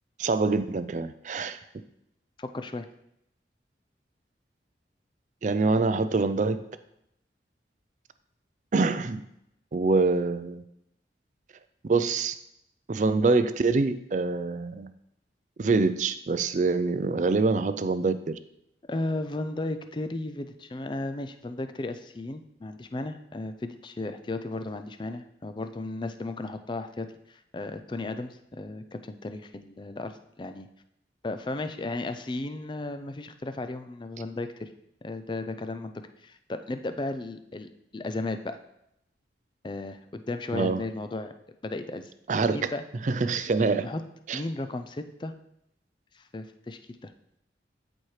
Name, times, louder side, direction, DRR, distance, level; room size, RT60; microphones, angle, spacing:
voice 1, 0.2-1.6 5.4-6.6 8.7-9.2 9.7-10.6 11.8-12.3 12.9-14.9 15.6-18.3 40.5-40.8 42.3-42.7 43.0-43.9 44.3-44.4, right 3 dB, 45° right, 12 dB, 0.4 m, -25 dB
voice 2, 2.4-2.9 18.9-30.7 31.2-34.7 35.0-35.9 36.2-38.6 39.6-41.3 41.6-42.1 42.5-42.8 43.8-44.0 44.3-45.3 46.1-47.1, left 2 dB, 25° left, 9 dB, 0.4 m, -35 dB
13.0 x 4.4 x 3.2 m, 0.79 s
head